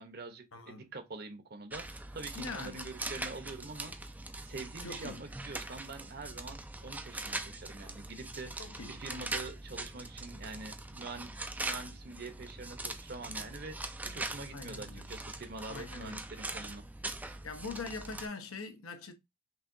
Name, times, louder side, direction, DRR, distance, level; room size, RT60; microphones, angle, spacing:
voice 1, 0.0-4.1 4.4-11.3 11.6-16.8, right 3 dB, 45° right, 0.9 m, -45 dB
voice 2, 0.5-0.9 2.3-2.9 4.8-5.3 8.6-9.0 14.5-15.1 15.7-16.2 17.4-19.1, left 4 dB, 80° left, 1.0 m, -43 dB
sound 1, 1.7-18.3, right 2 dB, 10° right, 0.4 m, -42 dB
5.7 x 2.9 x 2.6 m
head